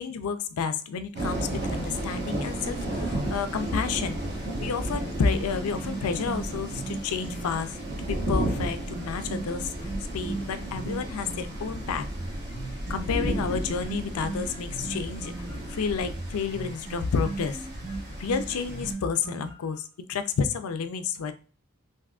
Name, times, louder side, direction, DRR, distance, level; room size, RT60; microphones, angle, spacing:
voice 1, 0.0-4.2 4.6-12.1 12.9-15.3 15.7-17.6 18.2-21.3, left 5 dB, 75° left, 10 dB, 0.4 m, -30 dB
sound 1, 1.1-18.9, right 1 dB, 50° right, 1.0 m, -33 dB
sound 2, 4.0-7.5 8.0-11.5 12.0-19.8, right 3 dB, 70° right, 1.2 m, -38 dB
3.5 x 2.6 x 2.4 m, 0.39 s
head